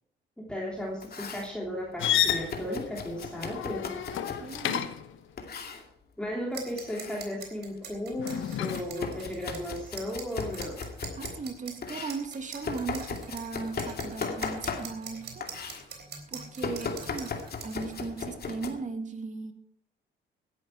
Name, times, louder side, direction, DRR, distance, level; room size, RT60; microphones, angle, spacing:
voice 1, 0.4-3.9 6.2-10.9, equal, 5° left, -3 dB, 3.2 m, -35 dB
Domestic sounds home sounds, 0.8-1.5 2.2-4.7 5.4-5.8 6.6-7.3 7.7-11.4 11.8-15.1 15.4-15.8 16.6-18.7, left 5 dB, 50° left, 2.5 m, -37 dB
sound 1, 2.0-5.2 8.2-8.8, left 10 dB, 80° left, 1.2 m, -30 dB
voice 2, 4.4-4.9 11.1-15.5 16.3-17.4 17.6-19.5, right 4 dB, 40° right, 6 dB, 2.3 m, -37 dB
sound 2, 6.5-18.0, right 6 dB, 60° right, 3.7 m, -44 dB
17.0 x 11.0 x 4.6 m, 0.72 s
cardioid pair, 90°, 20 cm